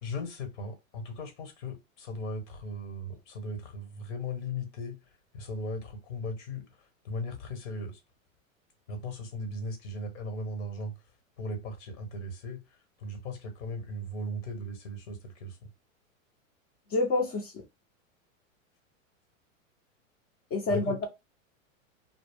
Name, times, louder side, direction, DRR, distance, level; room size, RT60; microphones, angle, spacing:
voice 1, 0.0-5.0 5.4-6.6 7.0-7.9 8.9-10.9 11.4-12.6 13.0-15.2 15.4-15.5 20.7-21.1, left 1 dB, 60° left, 1.2 m, -37 dB
voice 2, 16.9-17.6 20.5-21.1, left 2 dB, 30° left, 0.7 m, -28 dB
2.3 x 2.0 x 3.4 m
hypercardioid pair, 120°, 41 cm